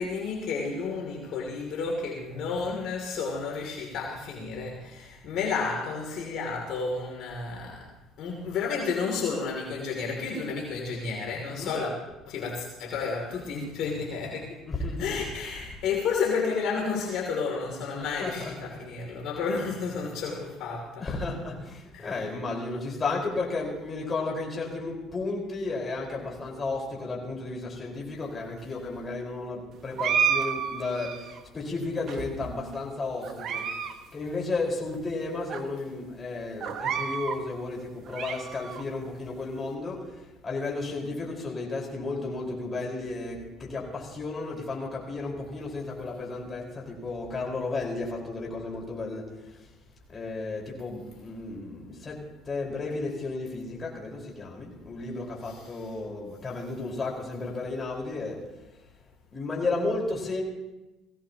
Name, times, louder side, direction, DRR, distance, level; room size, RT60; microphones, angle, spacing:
voice 1, 0.0-7.9 8.2-11.9 12.3-14.6 15.0-21.0 21.9-22.1 55.4-55.7, left 5 dB, 65° left, -1 dB, 2.8 m, -31 dB
voice 2, 11.5-11.8 14.7-15.2 18.0-18.7 21.0-33.7 34.1-49.7 50.1-58.5 59.3-60.4, left 3 dB, 30° left, -2 dB, 4.7 m, -33 dB
sound 1, 30.0-31.4 32.1-32.7 33.2-33.9 34.2-34.3 35.0-35.1 35.5-35.6 36.6-37.4 37.9-38.8, right 7 dB, 55° right, 1.3 m, -30 dB
20.0 x 16.5 x 2.9 m, 1.0 s
supercardioid pair, 90°, 0 cm